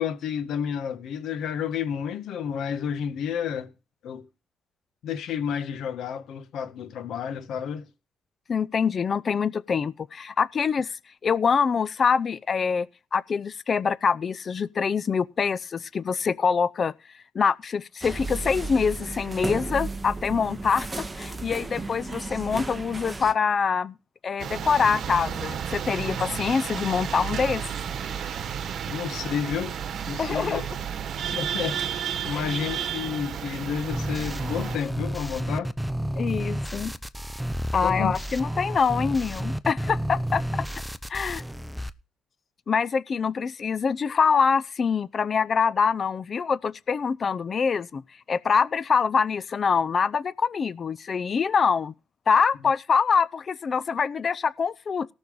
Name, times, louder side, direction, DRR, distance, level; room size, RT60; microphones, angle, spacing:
voice 1, 0.0-3.7 4.0-4.3 5.0-7.9 28.9-29.7 30.1-30.6 31.3-35.7 37.8-38.1, left 8 dB, 75° left, 1.9 m, -31 dB
voice 2, 8.5-10.9 11.2-16.9 17.3-23.9 24.2-27.6 30.2-30.6 32.3-32.4 36.1-36.9 37.7-40.4 41.1-41.4 42.7-48.0 48.3-51.9 52.3-55.1, left 6 dB, 45° left, 0.6 m, -25 dB
sound 1, 18.0-23.3, right 3 dB, 20° right, 1.6 m, -34 dB
sound 2, 24.4-34.8, right 8 dB, 60° right, 1.4 m, -32 dB
sound 3, 33.9-41.9, equal, ahead, 0.8 m, -31 dB
18.5 x 6.3 x 5.4 m
cardioid pair, 90°, 0 cm